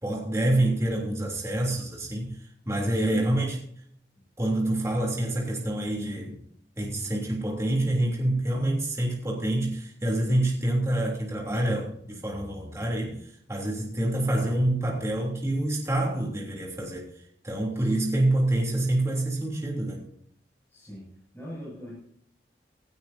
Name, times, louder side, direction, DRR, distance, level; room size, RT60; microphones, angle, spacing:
voice 1, 0.0-3.6 4.4-6.4 6.8-20.1, right 1 dB, 15° right, -3 dB, 3.5 m, -27 dB
voice 2, 2.9-3.4 17.7-17.9 20.7-21.1 21.3-22.1, equal, 10° left, -7 dB, 7.7 m, -42 dB
18.0 x 15.5 x 2.9 m, 0.66 s
head